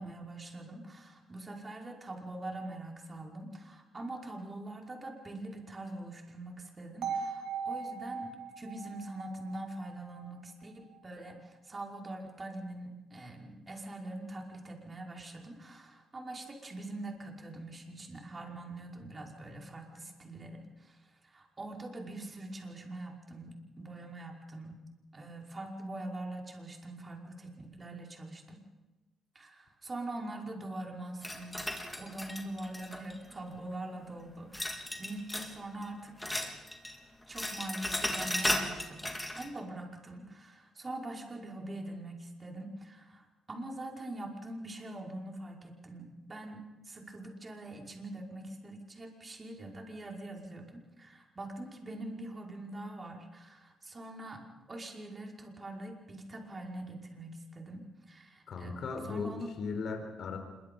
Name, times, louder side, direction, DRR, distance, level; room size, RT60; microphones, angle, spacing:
voice 1, 0.0-24.8 25.1-28.6 29.4-31.6 32.0-36.5 37.3-54.4 54.7-58.8 59.1-59.6, right 1 dB, 30° right, 1 dB, 5.3 m, -43 dB
sound 1, 7.0-11.0, right 5 dB, 85° right, 2.5 m, -39 dB
sound 2, 31.2-33.3 34.5-35.6 35.8-37.0 37.2-39.5, left 1 dB, 10° left, 3.7 m, -35 dB
voice 2, 58.5-59.3 59.6-60.4, left 4 dB, 60° left, 5 dB, 4.3 m, -36 dB
26.5 x 23.5 x 5.5 m, 1.1 s
cardioid pair, 90°, 0 cm